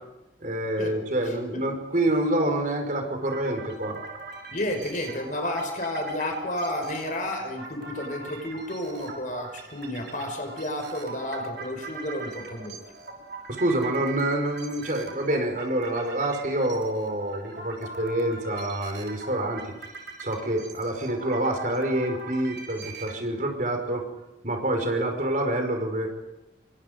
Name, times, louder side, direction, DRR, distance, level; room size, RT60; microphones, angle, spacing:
voice 1, 0.4-4.0 13.5-19.6 20.2-24.1 24.4-26.1, right 1 dB, 45° right, 4 dB, 5.5 m, -27 dB
voice 2, 1.2-1.6 4.5-12.8, left 1 dB, 45° left, 5 dB, 5.9 m, -31 dB
sound 1, 3.2-23.2, right 4 dB, 65° right, 6.3 m, -42 dB
29.0 x 25.5 x 5.4 m, 0.94 s
head